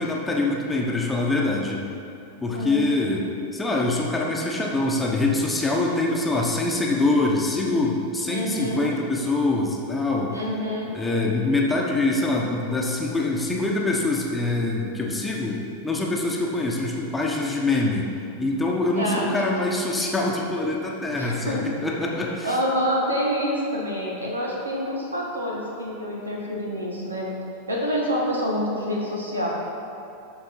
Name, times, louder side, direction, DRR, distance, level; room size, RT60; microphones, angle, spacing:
voice 1, 0.0-1.8 2.4-10.4 10.9-18.1 18.4-22.6, left 2 dB, 10° left, -2 dB, 1.1 m, -24 dB
voice 2, 2.5-2.9 8.3-8.9 10.3-10.9 19.0-19.2 21.2-21.7 22.4-27.3 27.7-29.5, equal, 80° right, -2 dB, 1.6 m, -27 dB
12.5 x 4.7 x 4.6 m, 2.7 s
figure-of-eight pair, 90°, 0 cm